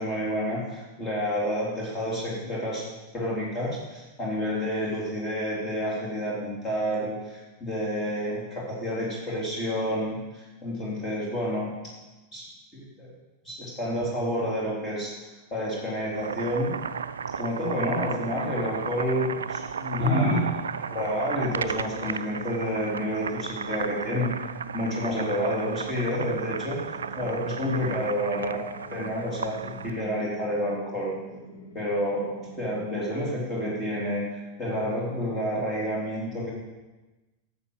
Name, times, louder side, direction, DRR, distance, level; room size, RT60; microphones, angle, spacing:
voice 1, 0.0-2.8 3.1-11.7 12.3-12.5 12.7-13.1 13.4-15.1 15.5-16.7 17.4-20.4 20.9-24.3 24.7-26.8 27.2-28.7 28.9-31.1 31.7-32.3 32.6-36.5, equal, 20° left, -6 dB, 3.5 m, -29 dB
Boiling, 16.0-30.0, right 6 dB, 70° right, 0.4 m, -34 dB
sound 1, 23.5-32.9, equal, 60° left, 1.6 m, -47 dB
11.5 x 7.0 x 6.4 m, 1.1 s
figure-of-eight pair, 90°, 0 cm